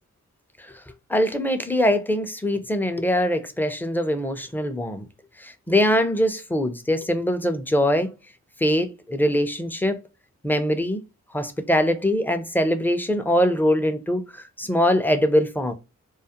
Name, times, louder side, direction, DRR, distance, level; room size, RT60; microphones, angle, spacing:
voice 1, 1.1-5.0 5.4-8.1 8.6-10.0 10.4-11.0 11.3-15.7, equal, 5° left, 0.5 m, -22 dB
2.4 x 2.0 x 2.7 m
cardioid pair, 40°, 32 cm